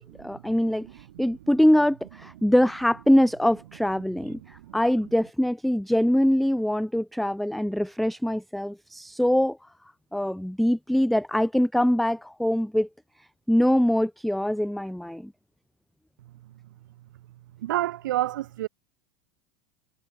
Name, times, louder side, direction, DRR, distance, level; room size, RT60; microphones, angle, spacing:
voice 1, 0.0-9.7 10.1-12.9 13.5-15.3, left 1 dB, ahead, 0.5 m, -23 dB
voice 2, 17.6-18.7, right 14 dB, 85° right, 4.1 m, -28 dB
supercardioid pair, 120°, 10 cm